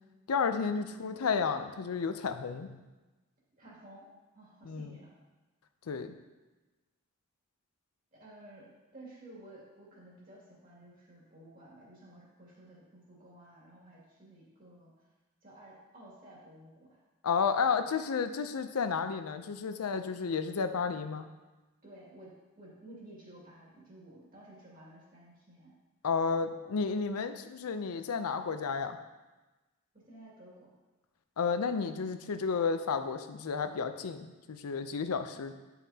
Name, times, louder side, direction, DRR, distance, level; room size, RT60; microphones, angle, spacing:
voice 1, 0.3-2.8 4.6-5.0 5.9-6.1 17.2-21.3 26.0-29.0 31.4-35.5, left 5 dB, 90° left, 9 dB, 0.5 m, -32 dB
voice 2, 0.8-1.2 3.6-4.1 4.3-5.1 8.2-15.1 15.4-17.0 17.8-17.9 21.8-25.7 26.2-26.8 29.9-30.7 35.4-35.5, right 1 dB, 40° right, -6 dB, 2.2 m, -54 dB
9.1 x 5.6 x 2.8 m, 1.1 s
head